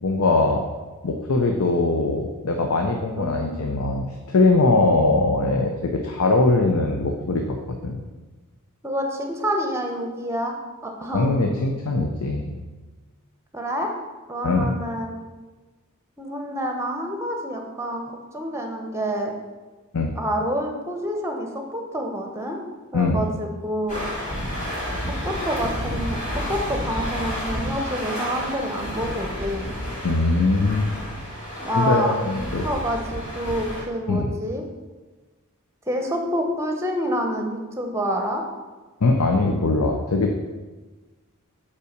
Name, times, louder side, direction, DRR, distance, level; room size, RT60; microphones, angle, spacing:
voice 1, 0.0-0.6 1.0-7.6 7.8-8.0 11.1-12.5 14.4-14.7 19.9-20.1 22.9-23.2 30.0-30.9 31.7-32.6 34.1-34.3 39.0-40.5, left 3 dB, 80° left, 3 dB, 0.7 m, -21 dB
voice 2, 3.2-3.6 8.8-10.6 10.8-11.7 13.5-13.9 14.3-15.1 16.2-19.3 20.2-22.6 22.9-24.0 25.2-29.7 31.6-34.6 35.9-38.4, equal, 15° right, 3 dB, 0.9 m, -28 dB
sound 1, 23.9-33.8, equal, 35° left, 2.3 m, -30 dB
5.6 x 4.9 x 6.5 m, 1.3 s
head